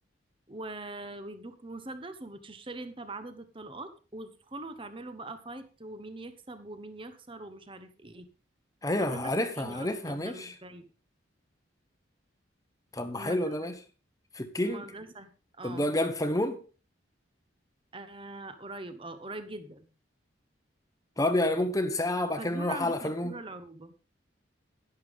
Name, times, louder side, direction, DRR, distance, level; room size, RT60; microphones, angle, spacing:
voice 1, 0.5-8.3 9.0-10.9 13.2-13.6 14.6-15.3 15.6-15.9 17.9-19.9 22.4-23.9, right 2 dB, 25° right, 1.1 m, -42 dB
voice 2, 8.8-10.5 12.9-13.7 14.3-14.8 15.6-16.6 21.2-23.3, left 1 dB, 15° left, 1.1 m, -29 dB
11.5 x 11.0 x 3.7 m
head